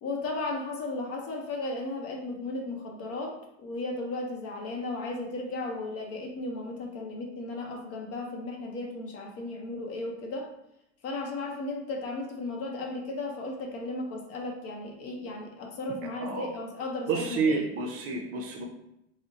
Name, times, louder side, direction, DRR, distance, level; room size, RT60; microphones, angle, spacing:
voice 1, 0.0-10.5 11.0-17.7, left 2 dB, 40° left, 1 dB, 0.7 m, -35 dB
voice 2, 17.1-18.7, right 4 dB, 40° right, 1 dB, 0.6 m, -29 dB
2.6 x 2.1 x 3.5 m, 0.81 s
supercardioid pair, 110°, 36 cm